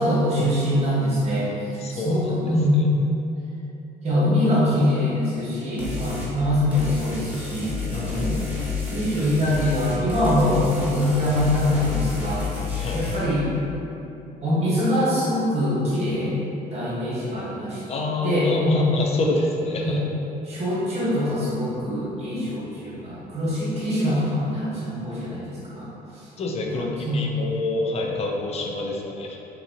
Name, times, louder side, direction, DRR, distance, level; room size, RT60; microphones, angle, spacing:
voice 1, 0.0-1.5 1.9-2.8 4.0-8.4 8.8-12.4 12.9-13.5 14.4-16.3 16.7-17.8 18.2-18.9 19.8-20.0 20.4-25.8 26.1-26.2 26.6-27.2, left 1 dB, 40° right, -8 dB, 1.1 m, -23 dB
voice 2, 1.8-2.3 7.9-8.5 12.8-13.1 17.9-20.0 26.4-29.4, left 2 dB, 40° left, 0 dB, 0.4 m, -27 dB
sound 1, 5.8-6.3 6.7-13.2, left 4 dB, 10° right, 0.7 m, -30 dB
2.9 x 2.5 x 2.7 m, 2.9 s
cardioid pair, 110°, 17 cm